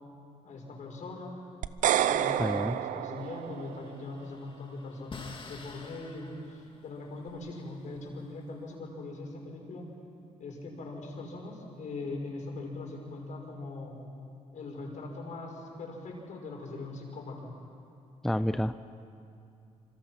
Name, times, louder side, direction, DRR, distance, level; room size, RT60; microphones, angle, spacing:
voice 1, 0.4-1.4 2.0-9.9 10.4-14.0 14.5-17.5, left 2 dB, 65° left, 0 dB, 5.8 m, -41 dB
sound 1, 1.6-3.9, right 10 dB, 75° right, 0.7 m, -29 dB
voice 2, 2.4-2.7 18.2-18.8, equal, 5° left, 11 dB, 0.5 m, -29 dB
sound 2, 3.2-8.7, left 3 dB, 40° left, 2.9 m, -50 dB
26.0 x 25.5 x 6.0 m, 2.6 s
cardioid pair, 100°, 13 cm